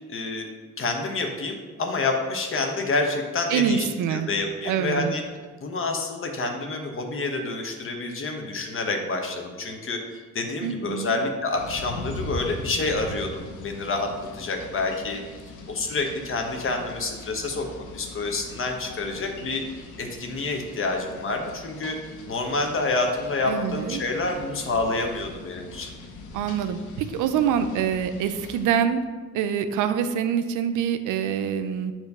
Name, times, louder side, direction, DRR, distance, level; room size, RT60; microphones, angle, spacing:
voice 1, 0.1-0.5 0.8-3.8 4.1-5.2 5.6-15.2 15.7-22.0 22.3-25.9, left 3 dB, 45° left, 3 dB, 1.1 m, -28 dB
voice 2, 3.5-4.3 4.7-5.1 10.6-11.2 23.5-24.0 26.3-29.0 29.3-31.9, right 8 dB, 85° right, 9 dB, 0.5 m, -25 dB
sound 1, 11.5-28.7, left 2 dB, 80° left, 0.9 m, -41 dB
7.2 x 3.1 x 5.3 m, 1.4 s
cardioid pair, 90°, 30 cm